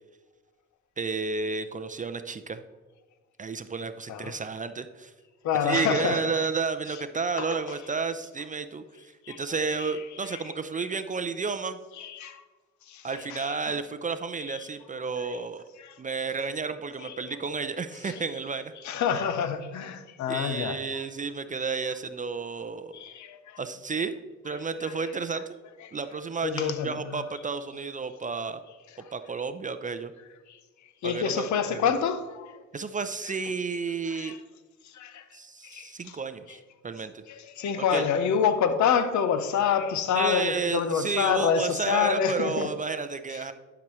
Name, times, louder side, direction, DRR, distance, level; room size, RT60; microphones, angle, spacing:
voice 1, 1.0-2.6 3.4-5.1 5.6-11.8 13.0-15.6 16.0-18.7 20.3-23.0 23.6-24.2 24.4-25.6 25.9-28.6 29.1-30.1 31.0-31.9 32.7-34.4 35.3-37.2 37.8-38.1 40.1-43.5, right 4 dB, 25° right, 0.5 m, -32 dB
voice 2, 5.4-6.3 7.4-7.6 9.3-9.4 10.3-10.4 12.0-12.4 12.9-13.6 14.5-14.7 15.2-15.4 15.8-15.9 17.0-17.2 18.8-20.8 22.9-23.6 26.4-27.2 30.5-30.6 31.0-32.6 34.1-34.4 34.9-35.2 35.6-36.1 37.3-42.7, left 7 dB, 70° left, 0.8 m, -27 dB
11.5 x 6.0 x 3.1 m
cardioid pair, 90°, 30 cm